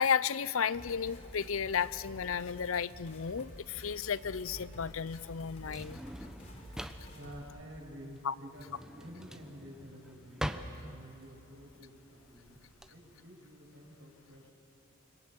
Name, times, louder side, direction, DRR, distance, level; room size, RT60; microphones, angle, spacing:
voice 1, 0.0-6.0 8.2-8.3, left 7 dB, 75° left, 18 dB, 0.6 m, -33 dB
sound 1, 0.7-7.4, equal, 35° left, 3.9 m, -50 dB
Drawer open or close, 3.3-12.9, equal, 5° right, 0.9 m, -44 dB
voice 2, 6.9-12.6 12.9-14.5, equal, 70° right, 0 dB, 6.0 m, -50 dB
26.5 x 25.0 x 7.6 m, 2.6 s
head